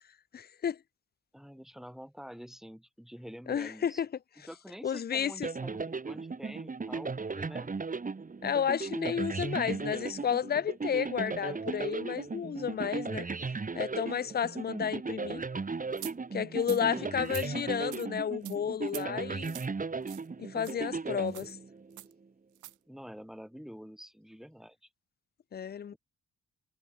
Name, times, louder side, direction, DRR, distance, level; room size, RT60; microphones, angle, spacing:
voice 1, 0.3-0.8 3.5-4.1 4.8-5.5 8.4-13.3 13.7-15.4 16.3-19.6 20.4-21.6 25.5-25.9, left 8 dB, 30° left, 0.6 m, -32 dB
voice 2, 1.3-4.0 4.5-7.7 11.2-11.7 16.7-17.2 22.9-24.9 25.9-26.0, equal, ahead, 7.3 m, -47 dB
sound 1, 5.4-22.0, right 4 dB, 25° right, 3.1 m, -36 dB
sound 2, 16.0-16.1 16.6-16.8 17.2-17.5 17.9-18.1 18.4-18.6 18.9-19.1 19.4-19.7 20.1-20.3 20.6-20.7 21.3-21.5 22.0-22.1 22.5-22.7, right 15 dB, 80° right, 1.1 m, -44 dB
cardioid pair, 90°, 30 cm